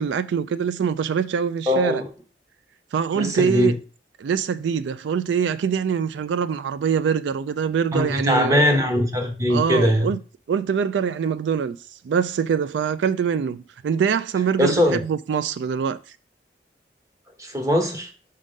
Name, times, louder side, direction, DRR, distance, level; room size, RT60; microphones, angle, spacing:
voice 1, 0.0-2.0 2.9-3.8 4.2-8.6 9.5-10.2 10.5-11.8 12.0-16.0, right 7 dB, 80° right, 0.3 m, -24 dB
voice 2, 1.7-2.0 3.1-3.7 7.9-10.1 14.6-15.0 17.4-18.1, left 1 dB, 20° right, 0.9 m, -21 dB
5.4 x 3.7 x 5.2 m
head